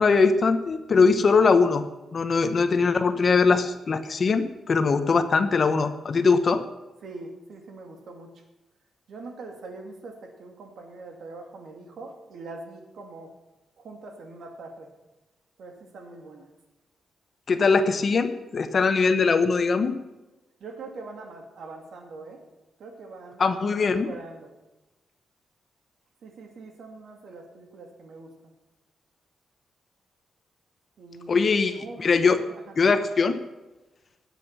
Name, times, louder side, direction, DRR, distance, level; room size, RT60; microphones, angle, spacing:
voice 1, 0.0-1.8 2.1-6.6 17.5-20.0 23.4-24.1 31.3-32.4 32.8-33.4, left 4 dB, 40° left, 9 dB, 0.9 m, -21 dB
voice 2, 7.0-8.4 9.1-13.3 13.8-14.9 15.6-16.5 20.6-22.4 22.8-23.4 23.7-23.8 24.0-24.5 26.2-28.3 31.0-31.4 31.7-32.7, right 3 dB, 65° right, 3 dB, 2.5 m, -43 dB
20.0 x 8.4 x 5.9 m, 1.1 s
wide cardioid pair, 155°, 0 cm